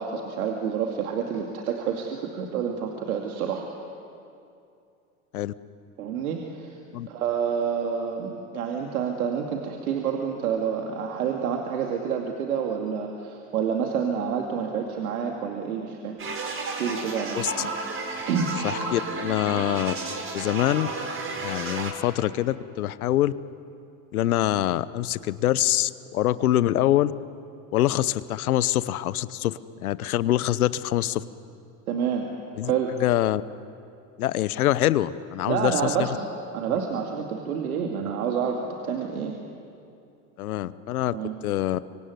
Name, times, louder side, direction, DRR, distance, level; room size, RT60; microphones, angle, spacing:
voice 1, 0.0-3.7 6.0-6.8 7.1-16.2 16.8-17.7 18.3-18.5 31.9-32.3 32.6-32.9 35.5-36.3 36.5-39.3 41.1-41.3, right 7 dB, 90° right, 2 dB, 2.4 m, -28 dB
sound 1, 16.2-21.9, right 3 dB, 30° right, 4.6 m, -32 dB
voice 2, 17.3-17.7 18.6-19.9 20.3-20.9 21.4-23.3 24.1-27.1 27.7-31.2 32.6-32.7 33.0-33.4 34.2-36.1 40.4-41.2 41.4-41.8, left 13 dB, 90° left, 16 dB, 1.0 m, -24 dB
25.0 x 24.5 x 9.5 m, 2.5 s
hypercardioid pair, 95°, 42 cm